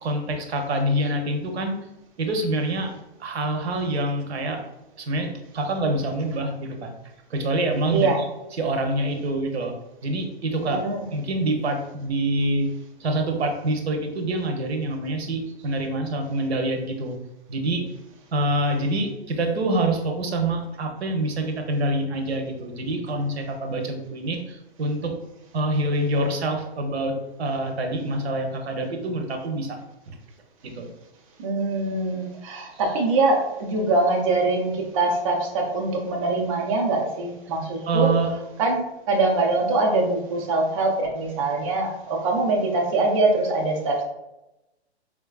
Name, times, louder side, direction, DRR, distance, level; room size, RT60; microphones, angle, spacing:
voice 1, 0.0-1.8 2.2-2.9 3.2-4.6 5.0-6.9 7.3-8.1 8.5-9.7 10.0-10.8 11.1-12.7 13.0-17.2 17.5-17.9 18.3-25.2 25.5-29.8 30.1-30.2 30.6-30.9 37.9-38.3, right 1 dB, 70° right, 4 dB, 0.8 m, -26 dB
voice 2, 7.9-8.2 10.7-11.1 31.4-38.2 38.6-44.0, right 2 dB, 30° right, -1 dB, 0.4 m, -23 dB
4.2 x 2.3 x 2.3 m, 0.93 s
hypercardioid pair, 150°, 33 cm